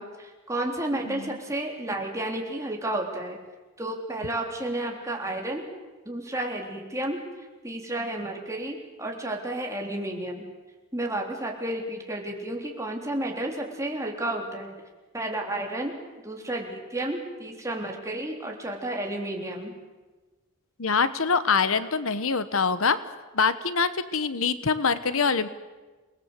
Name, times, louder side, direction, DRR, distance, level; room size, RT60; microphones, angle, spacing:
voice 1, 0.0-3.4 3.8-5.7 6.1-10.4 10.9-14.7 15.1-15.9 16.2-19.7, right 1 dB, 15° right, 1 dB, 3.7 m, -32 dB
voice 2, 20.8-23.0 23.3-25.5, left 5 dB, 70° left, 13 dB, 1.1 m, -24 dB
28.5 x 19.5 x 8.2 m, 1.2 s
head